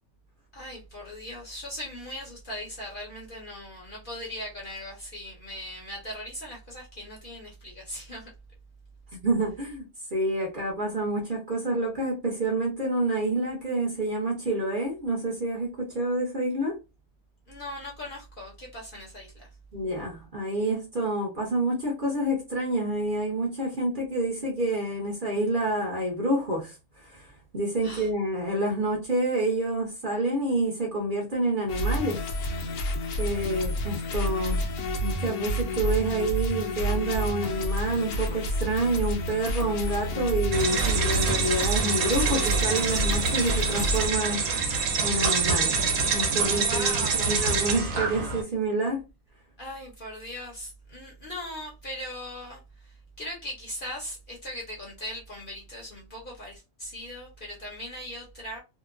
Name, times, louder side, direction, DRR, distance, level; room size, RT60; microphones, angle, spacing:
voice 1, 0.5-8.3 17.5-19.5 27.8-28.1 46.5-47.5 49.6-58.6, left 1 dB, 45° left, 0.8 m, -39 dB
voice 2, 9.1-16.8 19.7-27.3 27.5-32.2 33.2-34.6 35.0-44.4 45.0-49.0, right 1 dB, 45° right, 0.8 m, -28 dB
sound 1, 31.7-44.1, equal, 70° left, 1.0 m, -29 dB
sound 2, 40.5-48.4, right 4 dB, 70° right, 1.0 m, -26 dB
2.8 x 2.1 x 2.5 m
omnidirectional pair, 1.5 m